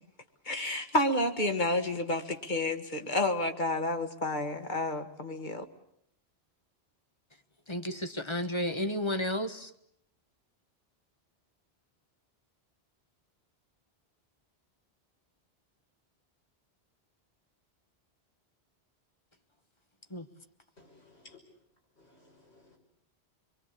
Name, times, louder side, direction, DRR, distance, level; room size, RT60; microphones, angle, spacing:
voice 1, 0.5-5.7, left 1 dB, 45° left, 6 dB, 2.1 m, -30 dB
voice 2, 7.7-9.7 20.1-20.3, left 1 dB, 25° left, 8 dB, 1.3 m, -32 dB
voice 3, 20.8-21.4 22.0-22.8, left 3 dB, 80° left, 0 dB, 6.4 m, -58 dB
26.5 x 23.0 x 8.5 m, 0.71 s
omnidirectional pair, 1.1 m